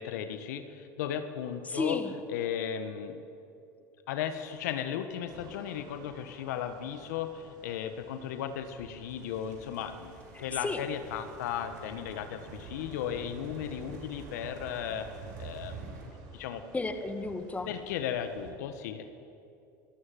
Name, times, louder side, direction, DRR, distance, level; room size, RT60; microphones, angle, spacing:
voice 1, 0.0-2.0 2.3-3.2 4.1-15.1 15.4-16.0 16.3-16.7 17.7-19.0, left 9 dB, 80° left, 9 dB, 1.4 m, -36 dB
voice 2, 1.7-2.1 10.3-10.8 16.7-17.7, left 3 dB, 15° left, 7 dB, 2.0 m, -33 dB
sound 1, 4.3-16.1, right 1 dB, 90° right, 4.1 m, -53 dB
sound 2, 5.3-18.5, right 4 dB, 55° right, 4.4 m, -51 dB
25.0 x 13.0 x 9.2 m, 2.7 s
hypercardioid pair, 90°, 9 cm